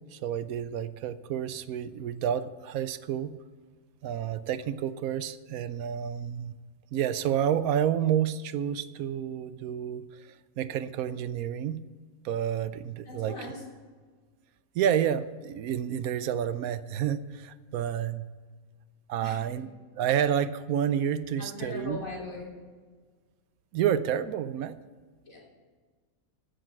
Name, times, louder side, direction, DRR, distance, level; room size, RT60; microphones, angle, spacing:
voice 1, 0.1-3.3 4.0-6.5 6.9-10.3 10.6-11.8 12.2-13.4 14.7-18.2 19.1-19.7 20.0-22.0 23.7-24.8, right 9 dB, 85° right, 14 dB, 1.1 m, -29 dB
voice 2, 13.0-13.7 19.2-19.5 21.4-22.5 25.3-25.4, left 2 dB, 70° left, -3 dB, 3.5 m, -39 dB
15.5 x 6.6 x 6.0 m, 1.5 s
omnidirectional pair, 1.5 m